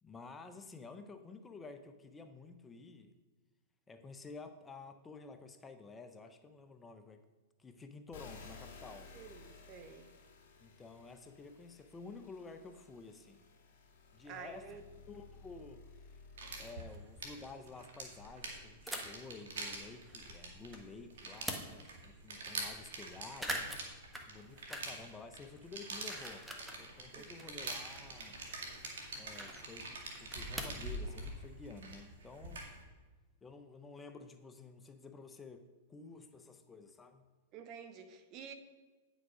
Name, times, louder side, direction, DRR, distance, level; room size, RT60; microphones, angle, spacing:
voice 1, 0.0-3.1 3.9-7.2 7.6-9.1 10.6-13.5 14.1-14.8 15.1-16.2 16.6-23.7 24.3-26.5 26.8-28.4 29.1-32.7 33.4-37.3, left 4 dB, 15° left, 8 dB, 0.7 m, -51 dB
sound 1, 8.1-16.7, left 4 dB, 55° left, 2.0 m, -56 dB
voice 2, 9.1-10.1 14.2-14.8 27.1-27.3 37.5-38.5, right 6 dB, 40° right, 10 dB, 0.9 m, -50 dB
sound 2, 15.1-15.2 15.7-15.8 16.1-16.2 16.4-17.0 18.9-19.3 19.8-20.8 21.2-22.0 22.4-22.5 22.7-23.0 23.3-25.1 25.4-26.8 27.2-30.9, right 1 dB, 5° right, 1.2 m, -45 dB
sound 3, 16.4-32.8, right 2 dB, 80° right, 2.0 m, -45 dB
9.2 x 6.2 x 5.1 m, 1.3 s
hypercardioid pair, 120°, 0 cm